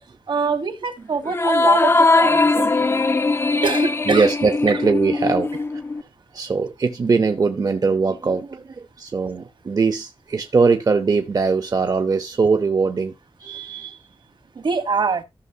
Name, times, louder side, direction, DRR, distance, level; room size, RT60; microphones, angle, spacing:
voice 1, 0.3-2.9 3.6-4.3 4.7-4.8 14.5-15.2, right 5 dB, 65° right, 1.3 m, -24 dB
sound 1, 1.3-6.0, left 3 dB, 30° left, 0.5 m, -19 dB
voice 2, 4.1-5.5 6.3-13.1 13.4-14.0, right 4 dB, 45° right, 0.8 m, -21 dB
14.5 x 6.3 x 2.8 m
wide cardioid pair, 120°, 9 cm